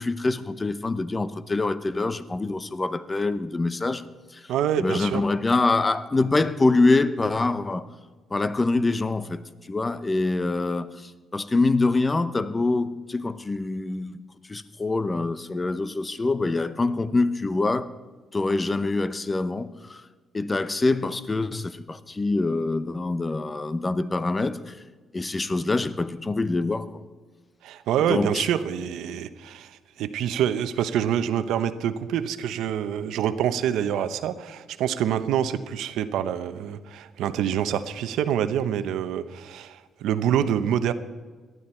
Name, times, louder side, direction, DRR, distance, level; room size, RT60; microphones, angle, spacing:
voice 1, 0.0-4.0 4.3-4.4 4.8-7.9 8.3-9.4 9.7-14.2 14.5-17.9 18.3-20.0 20.3-24.8 25.1-26.9 28.1-28.5, left 3 dB, 25° left, 0.8 m, -25 dB
voice 2, 4.5-5.2 27.6-40.9, right 9 dB, 85° right, 0.8 m, -26 dB
18.5 x 12.5 x 4.4 m
cardioid pair, 90°, 0 cm